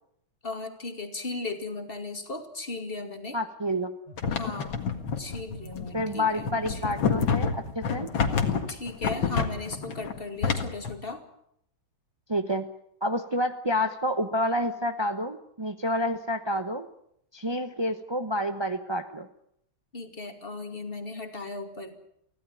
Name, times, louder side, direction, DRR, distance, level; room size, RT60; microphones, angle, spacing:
voice 1, 0.4-3.4 4.3-4.8 5.2-6.8 8.7-11.2 19.9-21.9, left 3 dB, 25° left, 6 dB, 2.6 m, -36 dB
voice 2, 3.3-3.9 5.9-8.1 12.3-12.7 13.0-16.9 17.3-19.3, equal, 40° right, 8 dB, 0.3 m, -29 dB
Telephone, 4.1-4.3 5.5-6.2 7.4-8.2, right 2 dB, 15° right, 3.0 m, -47 dB
sound 1, 4.2-10.9, left 6 dB, 65° left, 2.6 m, -28 dB
25.0 x 16.0 x 9.0 m, 0.73 s
omnidirectional pair, 2.3 m